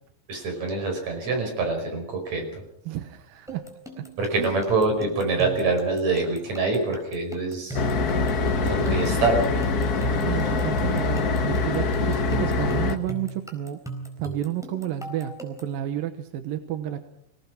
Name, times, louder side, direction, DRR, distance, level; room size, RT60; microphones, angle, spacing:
voice 1, 0.3-2.4 4.2-7.8 8.6-9.6, right 3 dB, 55° right, 4 dB, 6.3 m, -25 dB
voice 2, 2.9-3.6 4.0-4.1 4.4-4.6 10.2-13.8 14.2-17.0, right 11 dB, 90° right, 8 dB, 2.9 m, -31 dB
sound 1, 3.5-15.8, right 2 dB, ahead, 3.9 m, -39 dB
sound 2, 7.7-13.0, left 3 dB, 80° left, 0.8 m, -24 dB
26.0 x 18.0 x 6.1 m, 0.68 s
omnidirectional pair, 4.0 m